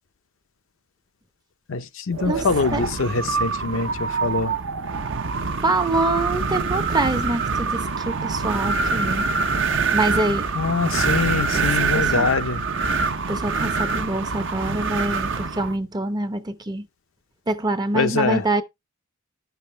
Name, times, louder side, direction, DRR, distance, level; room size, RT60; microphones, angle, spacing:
voice 1, 1.7-4.5 10.5-12.6 17.9-18.4, left 4 dB, 60° left, 0.7 m, -24 dB
Wind, 2.1-15.8, right 4 dB, 55° right, 0.8 m, -25 dB
voice 2, 5.6-9.3 9.9-10.5 11.5-11.6 11.9-12.3 13.3-16.9 17.5-18.6, right 2 dB, 20° right, 0.7 m, -25 dB
10.5 x 7.0 x 3.2 m
head